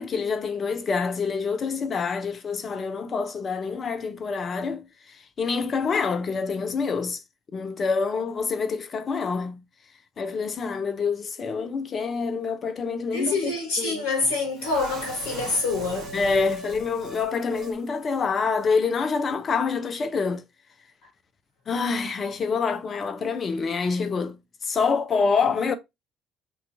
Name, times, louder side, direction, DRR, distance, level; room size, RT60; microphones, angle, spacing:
voice 1, 0.0-7.2 7.5-9.6 10.2-14.0 16.1-20.4 21.7-24.4 24.6-25.7, left 5 dB, 40° left, 0.5 m, -26 dB
voice 2, 13.1-16.1, left 3 dB, 75° left, 0.8 m, -26 dB
sound 1, 14.6-17.8 18.0-18.2 18.6-18.7, right 3 dB, 55° right, 1.0 m, -40 dB
2.4 x 2.3 x 3.9 m
hypercardioid pair, 55°, 0 cm